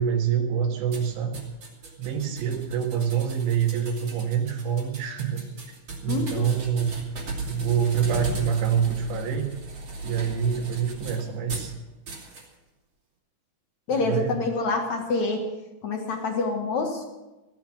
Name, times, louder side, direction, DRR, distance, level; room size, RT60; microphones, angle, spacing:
voice 1, 0.0-1.3 2.0-5.4 6.0-6.9 7.5-9.5 10.0-11.7 13.9-14.4, right 7 dB, 80° right, 3 dB, 3.9 m, -26 dB
sound 1, 0.9-11.7 12.1-12.5, right 3 dB, 40° right, 3.5 m, -37 dB
voice 2, 6.1-6.5 13.9-15.5 15.8-17.0, left 3 dB, 60° left, 3 dB, 2.0 m, -26 dB
16.5 x 12.0 x 6.0 m, 1.1 s
omnidirectional pair, 5.1 m